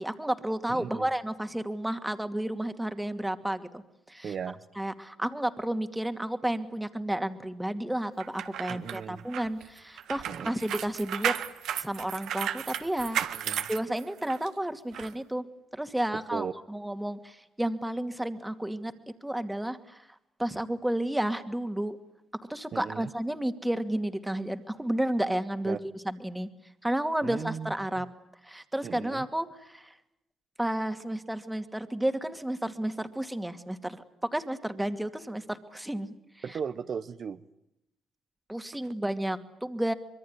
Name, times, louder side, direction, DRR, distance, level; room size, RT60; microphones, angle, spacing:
voice 1, 0.0-4.3 4.8-11.3 11.7-13.2 13.7-15.4 15.7-18.9 19.2-20.1 20.4-22.0 22.5-26.5 26.8-28.1 28.4-30.0 30.6-34.0 34.3-36.2 36.5-36.6 38.5-39.9, right 1 dB, 5° right, 8 dB, 2.4 m, -32 dB
voice 2, 0.7-1.1 4.2-4.6 8.7-9.2 10.3-10.5 13.3-13.7 16.3-16.5 22.7-23.1 25.6-25.8 27.2-28.0 28.8-29.3 36.4-37.4, right 7 dB, 55° right, 10 dB, 1.1 m, -37 dB
sound 1, 8.2-14.5 14.9-15.1, right 10 dB, 80° right, 1.7 m, -34 dB
25.5 x 23.0 x 9.8 m, 0.80 s
cardioid pair, 90°, 0 cm